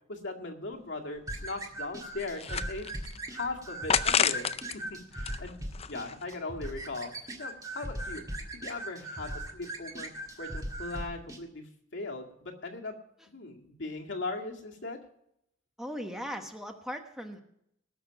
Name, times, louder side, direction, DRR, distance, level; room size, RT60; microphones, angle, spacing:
voice 1, 0.1-2.9 3.3-4.5 4.9-5.6 5.9-7.1 7.4-10.1 10.4-12.9 13.3-15.0, left 3 dB, 65° left, 1 dB, 2.1 m, -39 dB
sound 1, 0.7-0.8 1.2-1.3 1.8-3.2 3.9-4.8 5.1-6.3, left 7 dB, 30° left, 0.5 m, -30 dB
sound 2, 1.3-11.4, right 1 dB, 20° right, 1.8 m, -39 dB
voice 2, 15.8-17.4, equal, ahead, 4 dB, 1.1 m, -38 dB
19.0 x 6.6 x 5.8 m, 0.76 s
head